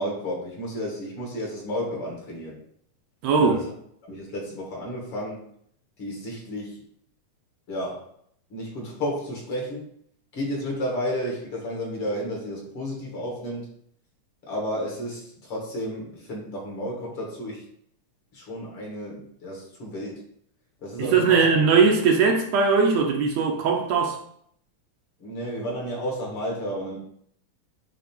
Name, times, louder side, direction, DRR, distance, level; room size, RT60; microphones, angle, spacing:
voice 1, 0.0-2.6 3.4-3.6 4.1-5.4 6.0-6.8 7.7-8.1 8.5-9.9 10.3-13.7 14.5-17.6 18.3-20.2 20.8-21.4 25.2-27.0, equal, 50° left, 2.5 m, -32 dB
voice 2, 3.2-3.6 21.0-24.2, right 5 dB, 70° right, 1.9 m, -20 dB
9.0 x 3.1 x 4.5 m
omnidirectional pair, 3.3 m